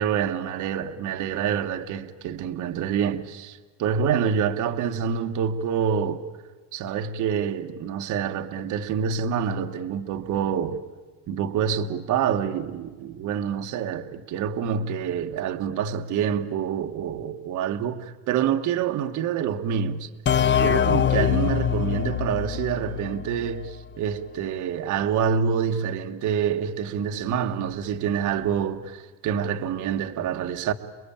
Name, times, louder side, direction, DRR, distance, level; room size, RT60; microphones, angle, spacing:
voice 1, 0.0-6.2 6.7-10.8 11.3-20.1 20.6-30.7, right 7 dB, 40° right, 1.4 m, -27 dB
sound 1, 20.3-23.8, left 9 dB, 25° left, 0.9 m, -24 dB
29.5 x 21.5 x 8.7 m
cardioid pair, 150°, 48 cm